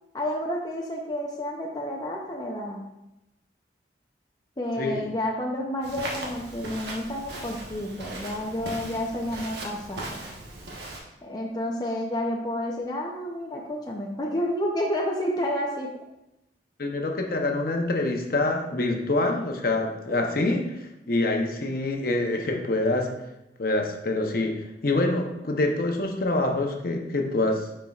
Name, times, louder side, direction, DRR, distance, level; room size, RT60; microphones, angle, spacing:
voice 1, 0.1-2.8 4.6-10.2 11.2-15.9, left 1 dB, 25° left, -1 dB, 0.6 m, -30 dB
Walk footsteps, 5.8-11.0, right 2 dB, 70° right, 1.1 m, -38 dB
voice 2, 16.8-20.6 21.1-23.1 23.6-27.7, left 2 dB, 55° left, 2 dB, 0.8 m, -26 dB
9.3 x 4.4 x 2.4 m, 0.90 s
head